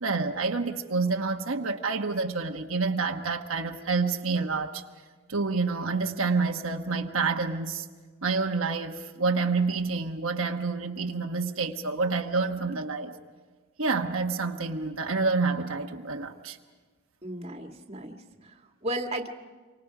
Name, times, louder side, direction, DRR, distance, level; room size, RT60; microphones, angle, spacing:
voice 1, 0.0-4.8 5.3-7.9 8.2-13.1 13.8-16.6, right 4 dB, 75° right, 1.2 m, -28 dB
voice 2, 17.2-19.3, right 1 dB, 30° right, 1.8 m, -35 dB
29.0 x 25.0 x 4.9 m
head